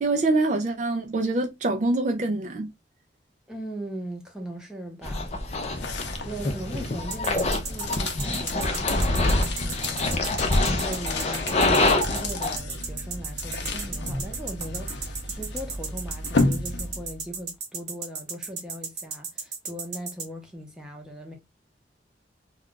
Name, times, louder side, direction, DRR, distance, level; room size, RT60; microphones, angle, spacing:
voice 1, 0.0-2.7, right 2 dB, 40° right, 0.4 m, -25 dB
voice 2, 3.5-5.3 6.2-21.3, right 1 dB, 5° right, 0.7 m, -39 dB
sound 1, 5.0-12.6, left 2 dB, 35° left, 0.4 m, -26 dB
sound 2, 5.1-17.3, left 2 dB, 75° left, 0.6 m, -33 dB
sound 3, 7.1-20.3, right 5 dB, 65° right, 0.9 m, -34 dB
2.3 x 2.3 x 3.7 m
head